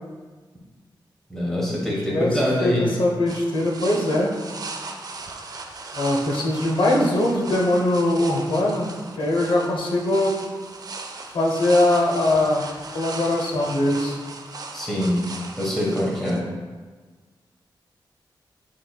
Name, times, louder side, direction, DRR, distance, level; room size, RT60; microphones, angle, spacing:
voice 1, 1.3-2.9 14.7-15.2 15.6-16.4, left 1 dB, 5° left, -5 dB, 1.1 m, -24 dB
voice 2, 1.8-4.3 5.9-8.9 9.1-10.4 11.3-12.6 12.9-14.2, left 1 dB, 90° left, -1 dB, 0.6 m, -21 dB
sound 1, 3.3-16.4, right 3 dB, 50° right, 0.4 m, -37 dB
5.7 x 3.0 x 2.2 m, 1.4 s
wide cardioid pair, 90°, 8 cm